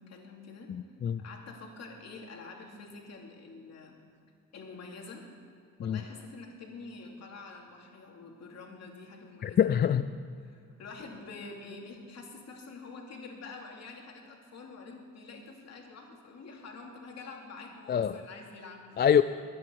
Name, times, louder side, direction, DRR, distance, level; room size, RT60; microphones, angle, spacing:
voice 1, 0.0-0.7 1.2-4.0 4.5-5.3 5.8-10.0 10.4-19.0, left 3 dB, 60° left, 0 dB, 2.8 m, -47 dB
voice 2, 0.7-1.2 5.8-6.0 9.4-10.1 17.9-18.2 19.0-19.2, left 8 dB, 35° left, 12 dB, 0.4 m, -25 dB
22.5 x 9.6 x 4.7 m, 2.5 s
cardioid pair, 90°, 30 cm